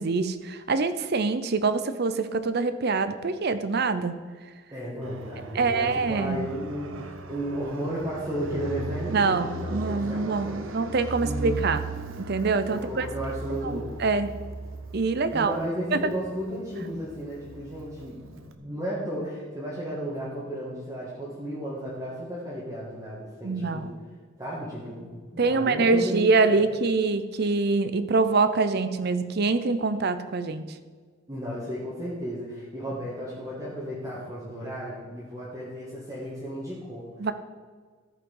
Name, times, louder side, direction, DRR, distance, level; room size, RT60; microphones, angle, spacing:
voice 1, 0.0-4.1 5.5-6.4 9.1-11.8 12.2-13.1 13.6-14.3 14.9-15.6 15.9-16.0 23.4-23.9 25.4-30.6 37.2-37.3, right 4 dB, 55° right, 12 dB, 0.6 m, -25 dB
voice 2, 4.7-10.9 11.2-11.6 12.7-14.1 15.3-23.9 24.4-26.7 31.3-37.1, equal, 15° right, -8 dB, 2.0 m, -34 dB
Fixed-wing aircraft airplane, 5.0-18.5, right 3 dB, 80° right, 0.8 m, -38 dB
13.5 x 5.7 x 5.5 m, 1.5 s
head